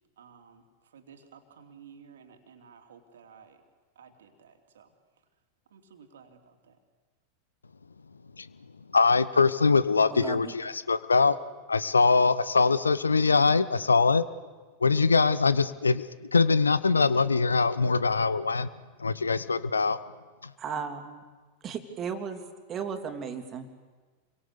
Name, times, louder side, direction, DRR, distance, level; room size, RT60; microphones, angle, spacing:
voice 1, 0.2-3.6 3.9-4.9 5.7-6.8, right 6 dB, 65° right, 5 dB, 2.9 m, -54 dB
voice 2, 8.0-11.4 11.7-14.2 14.8-18.7 19.0-20.0 20.4-20.5, left 4 dB, 75° left, 16 dB, 0.9 m, -23 dB
voice 3, 10.1-10.5 20.6-21.2 21.6-22.4 22.7-23.7, right 6 dB, 25° right, 7 dB, 3.1 m, -35 dB
29.5 x 23.5 x 6.9 m, 1.4 s
figure-of-eight pair, 90°, 0 cm